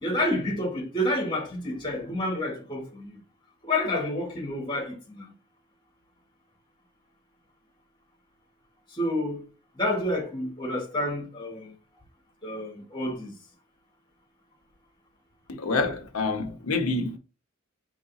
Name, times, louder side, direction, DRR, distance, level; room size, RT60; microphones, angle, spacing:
voice 1, 0.0-3.2 3.6-5.3 8.9-9.4 9.7-11.7 12.4-13.4, left 1 dB, 20° left, 1.6 m, -29 dB
voice 2, 15.5-17.2, left 3 dB, 90° left, 0.8 m, -27 dB
4.0 x 3.2 x 3.9 m
head